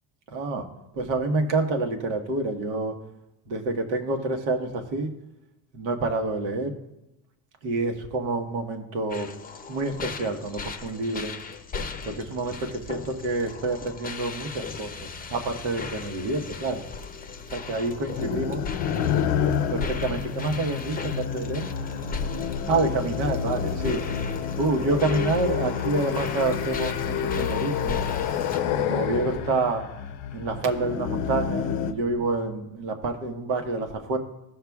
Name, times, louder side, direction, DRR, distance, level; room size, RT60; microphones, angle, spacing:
voice 1, 0.3-0.6 0.9-2.9 3.5-5.1 5.7-6.8 7.6-9.3 9.7-11.3 12.0-16.8 17.5-18.6 19.7-21.7 22.7-24.0 24.6-28.0 28.8-29.8 30.3-34.2, right 3 dB, 85° right, 4 dB, 1.3 m, -28 dB
sound 1, 9.1-28.6, left 4 dB, 20° left, 0.6 m, -37 dB
sound 2, 18.2-31.9, left 8 dB, 80° left, 0.7 m, -29 dB
15.0 x 6.6 x 2.4 m, 0.90 s
cardioid pair, 110°, 41 cm